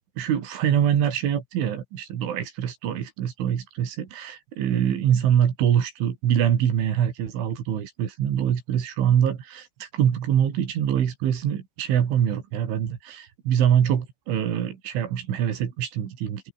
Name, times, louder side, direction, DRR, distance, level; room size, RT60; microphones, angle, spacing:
voice 1, 0.2-16.5, right 9 dB, 70° right, 5.4 m, -24 dB
omnidirectional pair, 5.9 m